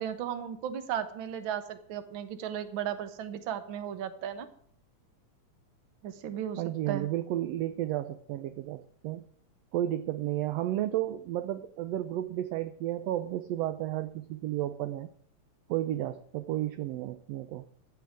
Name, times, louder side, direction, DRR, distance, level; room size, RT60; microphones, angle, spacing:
voice 1, 0.0-4.5 6.0-7.1, right 9 dB, 55° right, 10 dB, 1.5 m, -35 dB
voice 2, 6.6-9.2 9.7-15.1 15.7-17.6, right 13 dB, 75° right, 11 dB, 1.6 m, -32 dB
14.5 x 6.0 x 8.6 m, 0.64 s
omnidirectional pair, 3.4 m